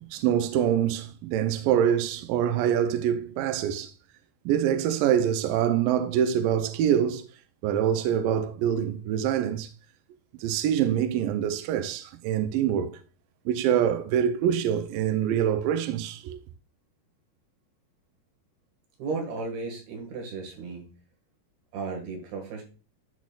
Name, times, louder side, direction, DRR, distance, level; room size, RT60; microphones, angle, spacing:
voice 1, 0.1-3.9 4.5-7.2 7.6-9.7 10.4-13.0 13.5-16.4, right 9 dB, 85° right, 2.0 m, -25 dB
voice 2, 19.0-20.9 21.7-22.6, right 4 dB, 70° right, 3.8 m, -34 dB
12.5 x 4.2 x 2.4 m
omnidirectional pair, 4.8 m